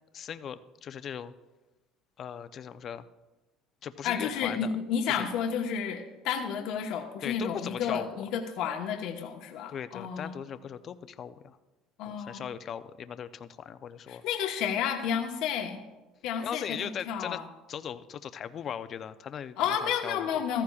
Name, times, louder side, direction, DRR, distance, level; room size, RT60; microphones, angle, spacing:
voice 1, 0.1-1.3 2.2-3.1 3.8-4.7 5.1-5.2 7.2-8.1 9.7-11.6 12.1-14.2 16.4-17.4 17.7-19.6 19.8-20.3, left 8 dB, 45° left, 12 dB, 0.5 m, -38 dB
voice 2, 4.0-10.4 12.0-12.5 14.1-15.8 16.2-17.4 19.6-20.6, left 7 dB, 75° left, 2 dB, 1.2 m, -31 dB
14.5 x 14.5 x 2.4 m, 1.1 s
cardioid pair, 110°, 0 cm